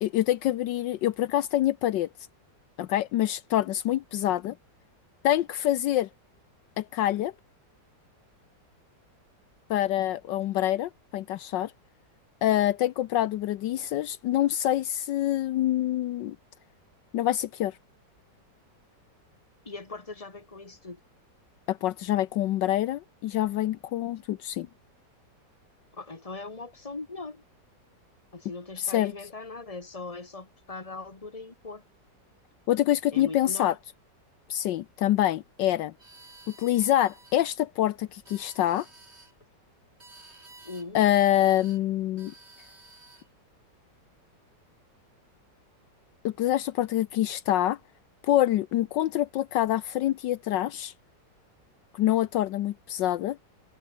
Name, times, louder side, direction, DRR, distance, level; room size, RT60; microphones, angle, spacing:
voice 1, 0.0-2.1 2.8-4.6 5.2-6.1 6.8-7.3 9.7-11.7 12.4-16.4 17.1-17.8 21.7-24.7 28.9-29.1 32.7-33.7 34.5-35.9 36.6-38.9 40.9-42.3 46.2-47.8 48.2-50.9 51.9-53.4, left 13 dB, 75° left, 1.4 m, -26 dB
voice 2, 19.6-21.0 25.9-27.4 28.3-31.8 33.1-33.8 40.6-41.0, left 3 dB, 20° left, 2.2 m, -40 dB
sound 1, 36.0-37.5 38.1-39.3 40.0-40.9 41.1-41.8 42.2-43.3, right 2 dB, 35° right, 4.4 m, -52 dB
omnidirectional pair, 2.0 m